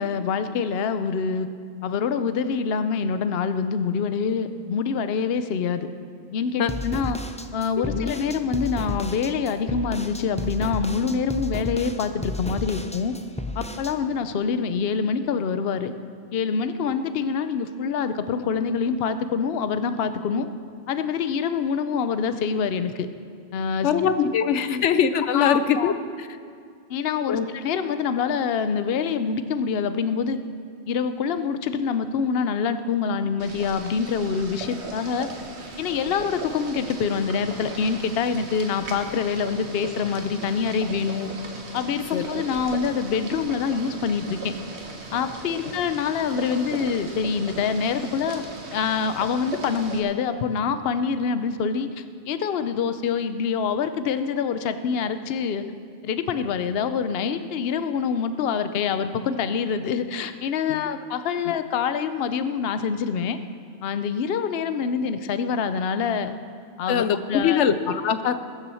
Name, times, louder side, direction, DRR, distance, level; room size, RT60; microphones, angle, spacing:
voice 1, 0.0-1.5 1.8-5.9 6.3-7.2 7.5-13.1 13.6-15.9 16.3-20.5 20.9-23.1 23.5-24.1 24.4-24.8 25.3-25.9 26.9-30.4 30.9-35.3 35.8-41.3 41.7-44.5 45.1-48.4 48.7-55.6 56.0-63.4 63.8-66.3 66.8-67.6, left 6 dB, 60° left, 10 dB, 0.9 m, -26 dB
sound 1, 6.7-13.9, left 1 dB, 10° left, 0.4 m, -32 dB
voice 2, 7.8-8.1 23.8-26.3 27.3-27.5 42.1-42.2 45.6-45.7 60.7-60.8 66.9-68.3, left 7 dB, 85° left, 11 dB, 1.0 m, -23 dB
Boiling, 33.4-50.0, right 2 dB, 70° right, 1.8 m, -38 dB
21.0 x 7.3 x 7.0 m, 2.3 s
omnidirectional pair, 1.2 m